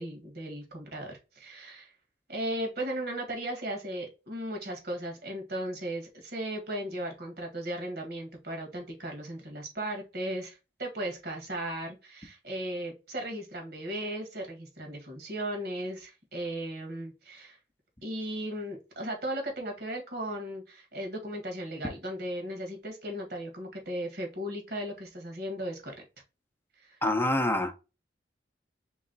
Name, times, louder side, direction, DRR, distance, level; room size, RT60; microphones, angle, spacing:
voice 1, 0.0-1.9 2.3-17.6 18.0-25.9 26.8-27.0, right 1 dB, 55° right, 1.6 m, -36 dB
voice 2, 27.0-27.7, left 1 dB, 10° left, 0.7 m, -26 dB
3.6 x 3.1 x 3.9 m
head